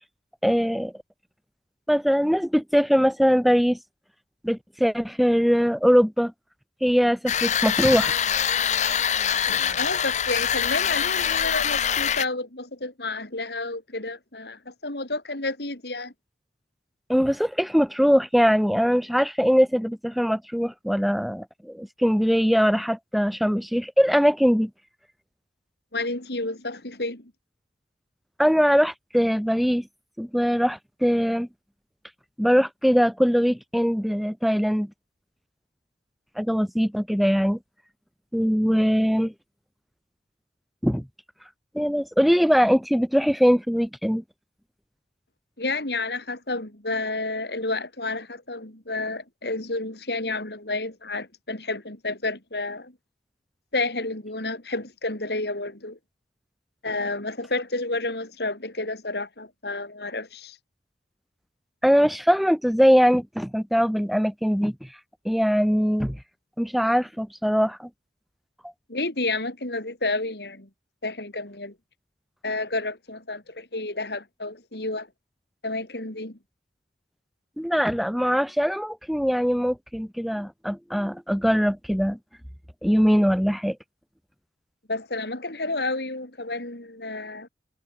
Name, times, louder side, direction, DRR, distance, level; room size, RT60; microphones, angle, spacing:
voice 1, 0.4-0.9 1.9-3.8 4.4-6.3 6.8-8.2 17.1-24.7 28.4-29.8 30.2-31.5 32.4-34.9 36.4-37.6 38.3-39.3 40.8-41.0 41.7-44.2 61.8-64.7 65.2-66.2 66.6-67.9 77.6-82.2 82.8-83.8, equal, ahead, 0.9 m, -21 dB
sound 1, 7.3-12.3, left 8 dB, 40° left, 0.8 m, -24 dB
voice 2, 9.7-16.1 25.9-27.3 45.6-52.9 53.7-56.0 56.8-60.6 68.9-70.7 71.0-71.7 72.4-75.1 75.6-76.4 84.9-87.5, left 2 dB, 65° left, 3.7 m, -30 dB
head